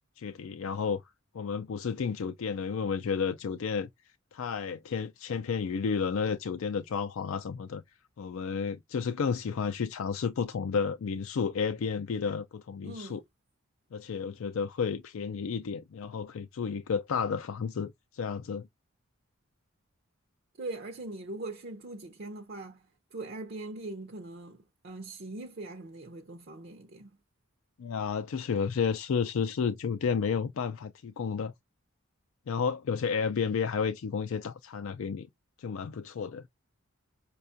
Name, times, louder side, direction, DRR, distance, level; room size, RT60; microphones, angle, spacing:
voice 1, 0.2-1.0 1.3-3.9 4.3-7.8 8.2-13.2 13.9-18.7 27.8-31.5 32.5-35.3 35.6-36.4, left 6 dB, 65° left, 0.4 m, -31 dB
voice 2, 12.8-13.2 20.6-24.6 24.8-27.2, right 2 dB, 50° right, 0.5 m, -41 dB
5.6 x 2.3 x 2.6 m
head